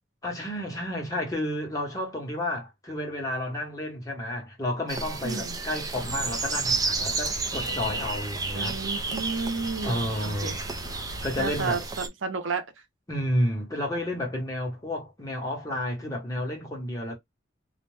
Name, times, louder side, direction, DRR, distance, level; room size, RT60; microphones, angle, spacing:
voice 1, 0.2-8.8 9.8-10.6 11.2-11.9 13.1-17.2, left 1 dB, 20° left, 1.0 m, -31 dB
sound 1, 4.9-12.1, right 4 dB, 20° right, 0.4 m, -32 dB
voice 2, 5.2-5.5 8.5-10.5 11.4-12.6, right 4 dB, 85° right, 0.6 m, -32 dB
sound 2, 5.9-11.8, left 1 dB, 75° left, 0.7 m, -41 dB
2.4 x 2.1 x 3.1 m
head